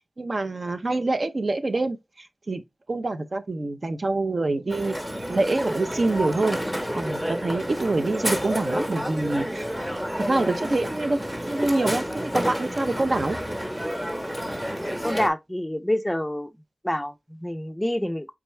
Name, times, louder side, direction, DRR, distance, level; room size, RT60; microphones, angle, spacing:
voice 1, 0.2-2.6 2.9-5.0 5.3-6.6 6.9-9.7 10.2-13.4, right 2 dB, 55° right, 0.6 m, -26 dB
Crowd, 4.7-15.3, equal, 15° right, 1.0 m, -30 dB
voice 2, 14.7-16.5 16.8-18.3, left 1 dB, 10° left, 0.4 m, -27 dB
4.4 x 3.5 x 3.1 m
wide cardioid pair, 75°, 0 cm